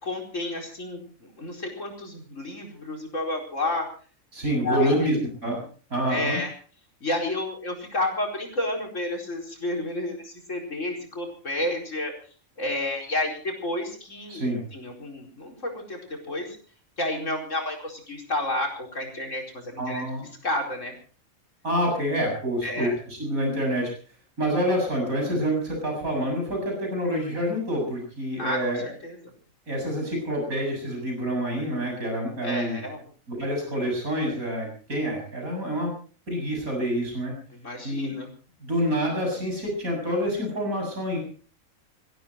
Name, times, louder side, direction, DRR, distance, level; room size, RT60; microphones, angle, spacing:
voice 1, 0.0-3.9 4.4-5.2 6.1-6.5 7.0-12.1 12.6-14.4 14.7-16.6 17.0-20.0 20.4-20.9 22.6-23.0 28.4-29.3 32.4-33.0 37.5-38.3, left 1 dB, 60° left, 1 dB, 4.9 m, -31 dB
voice 2, 4.3-5.2 5.4-5.6 5.9-6.4 14.3-14.6 19.8-20.2 21.6-23.9 24.4-28.9 29.7-32.8 33.3-35.9 36.3-37.3 37.8-38.1 38.6-41.2, equal, 90° right, 1 dB, 7.7 m, -27 dB
21.0 x 15.5 x 4.5 m, 0.41 s
omnidirectional pair, 1.4 m